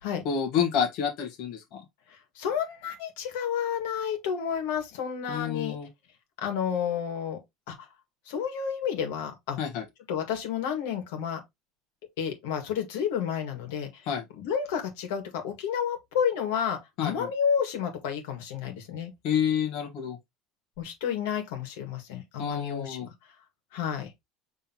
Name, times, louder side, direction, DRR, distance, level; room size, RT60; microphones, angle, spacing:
voice 1, 0.2-1.8 5.3-5.9 9.6-9.8 14.1-14.2 17.0-17.3 19.2-20.2 22.4-23.1, left 8 dB, 60° left, 1.3 m, -29 dB
voice 2, 2.3-5.8 6.4-7.4 7.7-7.8 8.3-9.6 10.1-11.4 12.2-14.1 14.4-19.1 20.8-23.1 23.7-24.1, left 8 dB, 85° left, 1.7 m, -30 dB
5.4 x 3.4 x 2.9 m
cardioid pair, 140°, 0 cm